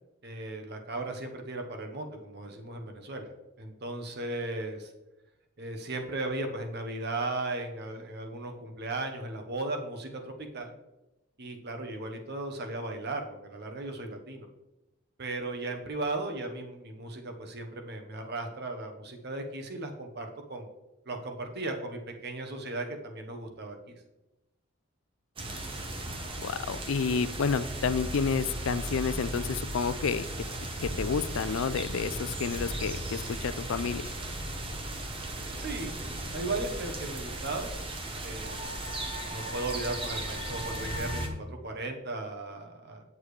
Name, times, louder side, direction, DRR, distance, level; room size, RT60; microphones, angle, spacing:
voice 1, 0.2-3.3 3.6-4.9 5.6-10.7 11.4-14.5 15.2-20.7 21.0-23.8 35.5-35.9 36.3-37.7 38.2-38.9 39.3-43.0, right 2 dB, 55° right, 4 dB, 1.1 m, -36 dB
sound 1, 25.4-41.3, right 1 dB, 25° right, 1.0 m, -36 dB
voice 2, 26.4-30.3 30.8-34.1, left 5 dB, 75° left, 15 dB, 0.4 m, -30 dB
8.3 x 7.2 x 3.2 m, 1.0 s
head